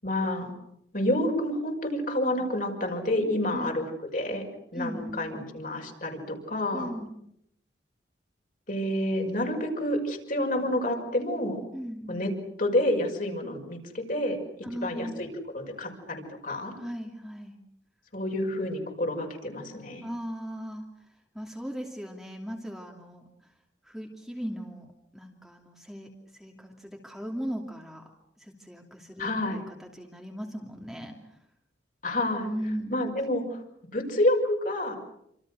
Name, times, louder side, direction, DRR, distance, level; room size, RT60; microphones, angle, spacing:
voice 1, 0.0-0.5 0.9-3.8 4.1-4.4 4.7-6.9 8.7-11.6 12.1-12.3 12.6-14.4 14.8-15.3 15.5-16.7 18.1-20.1 29.2-29.6 32.0-32.5 32.9-33.6 33.9-35.0, left 1 dB, 45° left, 3 dB, 6.1 m, -28 dB
voice 2, 4.7-5.2 6.7-7.2 11.7-12.2 14.6-15.2 16.7-17.6 20.0-23.5 23.8-28.1 28.4-31.4 32.4-33.0, equal, ahead, 0 dB, 2.8 m, -38 dB
28.5 x 27.0 x 6.4 m, 0.76 s
head